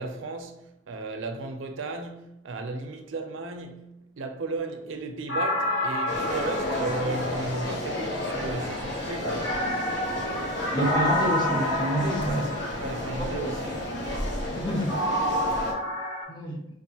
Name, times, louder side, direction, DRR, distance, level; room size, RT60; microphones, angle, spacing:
voice 1, 0.0-3.9 4.2-9.5 12.3-13.8, right 3 dB, 75° right, 0.5 m, -35 dB
sound 1, 5.3-8.1 9.4-13.2 14.9-16.2, equal, 90° left, 1.0 m, -29 dB
sound 2, 6.1-15.7, left 1 dB, 60° left, 0.9 m, -32 dB
voice 2, 10.7-12.5 13.2-13.5 14.5-14.9 16.3-16.6, right 1 dB, 20° left, 0.6 m, -28 dB
5.2 x 2.4 x 2.8 m
head